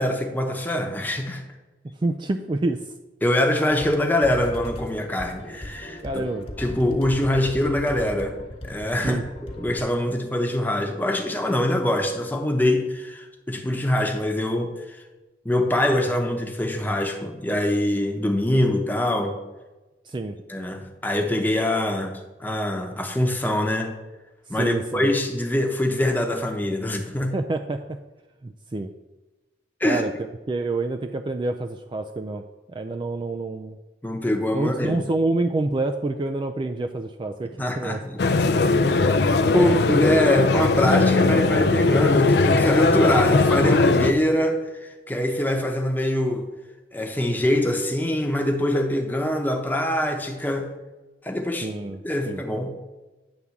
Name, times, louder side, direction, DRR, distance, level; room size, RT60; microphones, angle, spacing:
voice 1, 0.0-1.4 3.2-6.2 6.6-8.4 8.6-9.2 9.6-15.0 15.4-19.4 20.5-23.9 24.5-27.3 29.8-30.0 34.0-35.0 37.6-38.2 38.9-39.2 39.5-46.5 46.9-50.7 51.2-51.7 52.0-52.7, left 1 dB, 10° left, 3 dB, 0.9 m, -24 dB
voice 2, 1.8-2.9 6.0-6.5 9.0-9.2 20.0-20.4 24.5-25.1 27.3-28.0 28.4-28.9 29.8-30.1 30.5-32.4 32.7-33.8 34.5-38.0 39.5-39.7 51.6-52.4, right 2 dB, 25° right, 6 dB, 0.3 m, -27 dB
sound 1, 3.7-9.8, left 1 dB, 35° left, 1.1 m, -38 dB
sound 2, 38.2-44.1, left 3 dB, 65° left, 0.5 m, -19 dB
9.6 x 3.6 x 7.1 m, 1.1 s
head